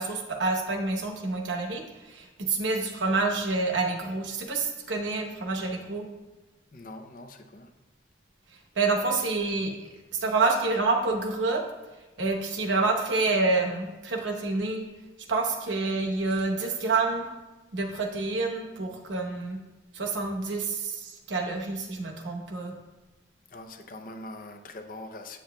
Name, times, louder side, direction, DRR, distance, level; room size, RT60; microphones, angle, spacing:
voice 1, 0.0-6.0 8.7-9.8 10.1-11.6 12.2-14.8 15.3-17.3 17.7-19.6 19.9-22.7, right 3 dB, 90° right, 0.9 m, -28 dB
voice 2, 6.7-7.7 23.5-25.4, left 2 dB, 50° left, 0.6 m, -43 dB
7.9 x 7.3 x 2.3 m
head